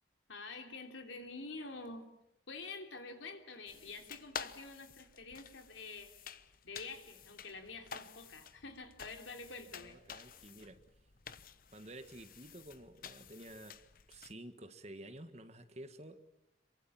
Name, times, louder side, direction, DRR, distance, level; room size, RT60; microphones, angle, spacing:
voice 1, 0.3-2.1 2.5-6.1 6.6-10.0, left 3 dB, 80° left, 5 dB, 3.3 m, -47 dB
sound 1, 3.7-14.3, left 6 dB, 45° left, 0.9 m, -51 dB
voice 2, 9.7-10.8 11.7-13.8 14.1-16.2, right 1 dB, 35° right, 9 dB, 1.6 m, -51 dB
27.0 x 24.0 x 7.4 m, 0.87 s
head